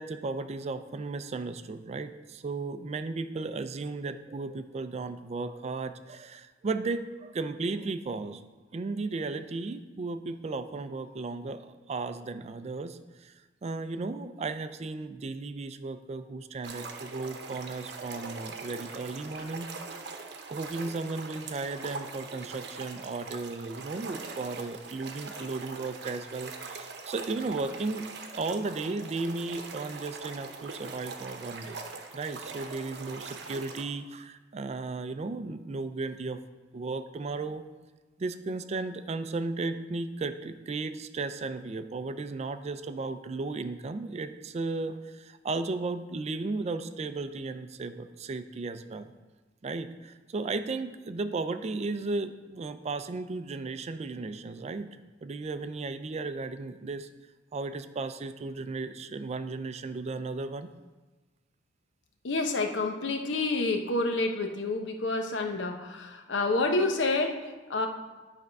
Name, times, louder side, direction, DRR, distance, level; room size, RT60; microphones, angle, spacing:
voice 1, 0.0-8.4 8.7-13.3 13.6-19.7 20.5-31.8 32.1-36.4 36.7-37.6 38.2-49.1 49.6-57.1 57.5-60.7, right 3 dB, 35° right, 11 dB, 0.4 m, -35 dB
Water Stream, 16.6-33.8, right 4 dB, 65° right, 0.8 m, -42 dB
voice 2, 62.2-67.9, left 2 dB, 80° left, 5 dB, 0.8 m, -28 dB
10.0 x 3.5 x 5.3 m, 1.2 s
head